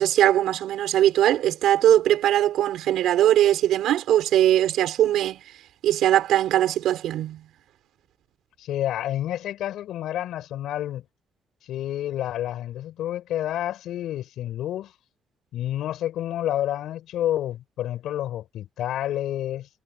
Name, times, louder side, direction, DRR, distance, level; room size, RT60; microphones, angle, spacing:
voice 1, 0.0-5.4 5.8-7.4, right 12 dB, 85° right, 4.8 m, -20 dB
voice 2, 8.6-11.0 11.7-14.9 15.5-19.7, left 12 dB, 80° left, 5.9 m, -29 dB
cardioid pair, 180°, 0 cm